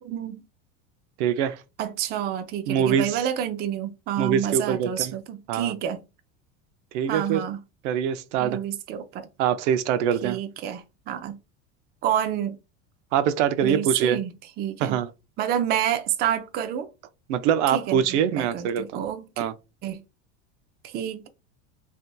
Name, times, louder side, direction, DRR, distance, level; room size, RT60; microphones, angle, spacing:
voice 1, 0.0-0.4 1.8-6.0 7.1-7.6 8.4-9.3 10.2-11.4 12.0-12.6 13.6-15.0 15.4-16.9 17.7-19.4 19.8-20.0 20.8-21.3, right 10 dB, 30° right, 0.4 m, -29 dB
voice 2, 1.2-1.6 2.7-3.2 4.2-5.1 5.5-5.7 6.9-7.4 7.8-8.6 9.4-10.4 13.1-14.2 14.8-15.1 17.3-19.0 19.4-19.5, right 8 dB, 75° right, 0.6 m, -24 dB
3.3 x 2.7 x 2.2 m
supercardioid pair, 130°, 36 cm